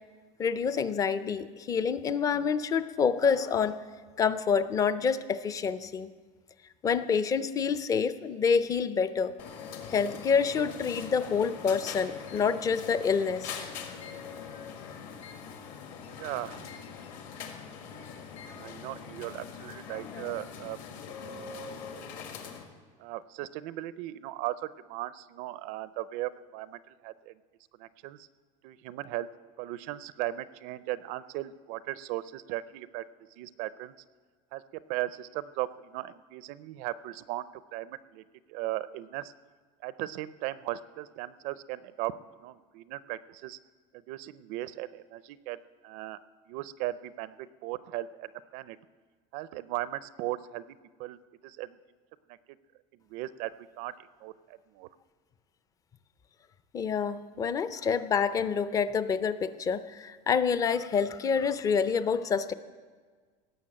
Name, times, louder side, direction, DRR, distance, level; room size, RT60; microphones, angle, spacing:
voice 1, 0.4-3.8 4.2-6.1 6.8-9.3 9.9-13.5 56.7-62.5, left 6 dB, 20° left, 14 dB, 0.5 m, -27 dB
sound 1, 9.4-22.7, left 6 dB, 55° left, 1.7 m, -42 dB
voice 2, 16.1-16.7 18.5-20.8 23.0-27.3 27.8-28.3 28.6-29.3 29.6-33.0 33.4-33.9 34.5-38.2 38.5-39.3 39.8-42.1 42.4-43.6 44.1-45.6 45.8-46.2 46.5-48.8 49.3-50.7 51.0-51.2 51.4-51.8 53.1-54.9, right 15 dB, 55° right, 16 dB, 0.4 m, -37 dB
17.5 x 7.0 x 8.7 m, 1.5 s
cardioid pair, 160°, 16 cm